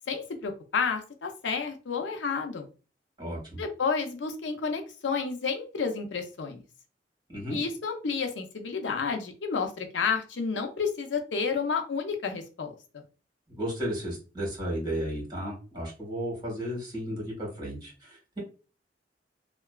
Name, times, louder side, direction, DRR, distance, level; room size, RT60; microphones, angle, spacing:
voice 1, 0.1-2.7 3.6-6.6 7.5-13.0, left 5 dB, 90° left, 5 dB, 0.5 m, -31 dB
voice 2, 3.2-3.6 7.3-7.6 13.5-18.4, equal, 25° right, -3 dB, 1.5 m, -34 dB
2.8 x 2.2 x 2.3 m, 0.34 s
head